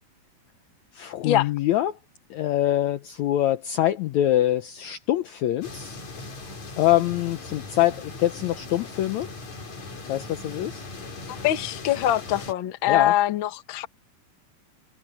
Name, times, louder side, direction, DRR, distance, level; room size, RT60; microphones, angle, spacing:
voice 1, 0.9-2.0 2.3-6.0 6.8-9.3 10.1-10.8 12.9-13.1, left 13 dB, 90° left, 1.6 m, -24 dB
sound 1, 5.6-12.5, left 3 dB, 50° left, 6.0 m, -39 dB
voice 2, 11.4-13.9, left 12 dB, 70° left, 1.1 m, -23 dB
omnidirectional pair, 4.3 m